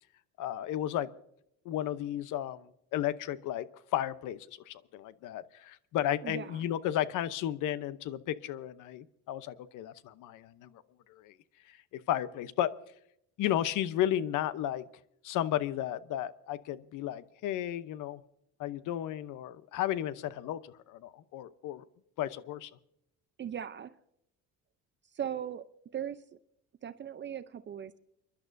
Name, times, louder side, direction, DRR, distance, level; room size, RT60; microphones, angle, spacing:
voice 1, 0.4-1.1 1.6-10.8 11.1-11.4 11.7-12.7 13.4-14.9 15.2-18.2 18.6-21.8 22.2-22.7, left 12 dB, 65° left, 15 dB, 0.9 m, -34 dB
voice 2, 23.4-23.9 25.1-25.6 25.9-26.2 26.8-28.0, right 9 dB, 35° right, 11 dB, 0.6 m, -38 dB
30.0 x 11.5 x 2.7 m, 0.76 s
cardioid pair, 110°, 34 cm